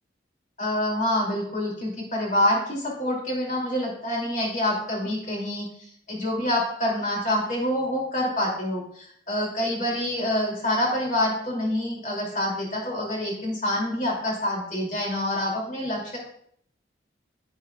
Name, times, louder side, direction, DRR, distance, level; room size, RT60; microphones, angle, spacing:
voice 1, 0.6-16.2, left 1 dB, 45° left, -2 dB, 2.7 m, -27 dB
9.3 x 9.2 x 2.3 m, 0.65 s
head